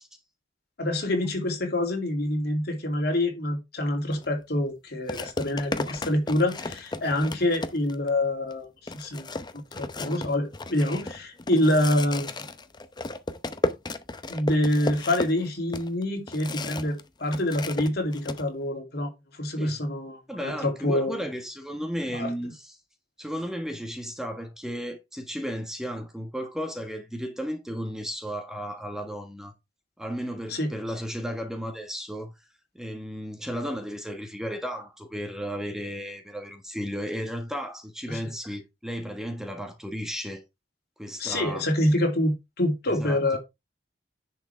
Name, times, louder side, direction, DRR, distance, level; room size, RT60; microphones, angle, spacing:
voice 1, 0.8-8.7 8.9-9.3 9.7-12.3 14.3-21.2 22.2-22.3 30.5-30.7 38.1-38.2 41.2-43.4, left 1 dB, 60° left, 2.7 m, -26 dB
sound 1, 4.1-4.3 5.1-8.1 8.5-8.6 8.9-17.0 17.3-18.4, left 2 dB, 25° left, 0.7 m, -34 dB
voice 2, 20.3-22.7 23.2-29.5 30.0-32.3 32.7-40.4 41.0-41.7 43.0-43.2, equal, 5° right, 1.4 m, -34 dB
10.5 x 6.2 x 3.4 m
head